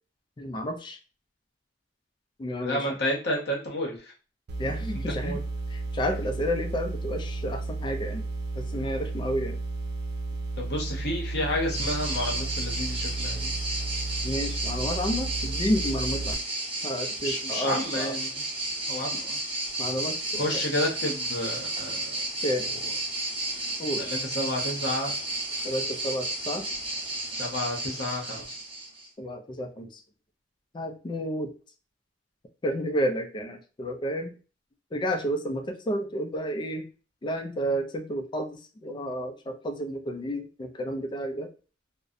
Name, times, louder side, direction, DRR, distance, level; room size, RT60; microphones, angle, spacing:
voice 1, 0.4-1.0 2.4-2.8 4.6-5.4 5.7-8.2 8.6-9.6 14.2-16.4 16.8-18.1 19.8-20.4 22.4-22.7 23.8-24.0 25.6-26.7 29.2-29.9 30.7-31.5 32.6-34.4 34.9-36.9 37.2-41.5, equal, 25° left, 5 dB, 0.3 m, -31 dB
voice 2, 2.6-4.1 5.1-5.4 10.6-13.5 17.2-18.3 18.9-19.4 20.4-22.1 22.6-22.9 24.0-25.1 27.4-28.6, left 1 dB, 60° left, -1 dB, 0.7 m, -31 dB
sound 1, 4.5-16.3, right 3 dB, 60° right, 0.4 m, -33 dB
sound 2, 11.7-29.1, right 2 dB, 30° right, 0.8 m, -32 dB
2.6 x 2.0 x 2.4 m, 0.35 s
head